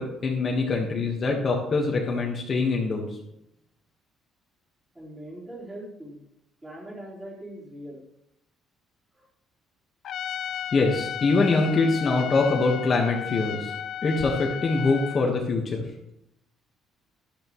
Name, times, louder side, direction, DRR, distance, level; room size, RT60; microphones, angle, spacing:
voice 1, 0.0-3.2 10.7-13.7 14.0-15.8, left 3 dB, 30° left, 0 dB, 1.4 m, -24 dB
voice 2, 4.9-6.2 6.6-8.0 9.1-9.2, right 1 dB, 15° right, -4 dB, 4.0 m, -41 dB
Trumpet, 10.0-15.3, left 9 dB, 55° left, 0.6 m, -34 dB
12.5 x 12.0 x 3.1 m, 0.79 s
cardioid pair, 160°, 0 cm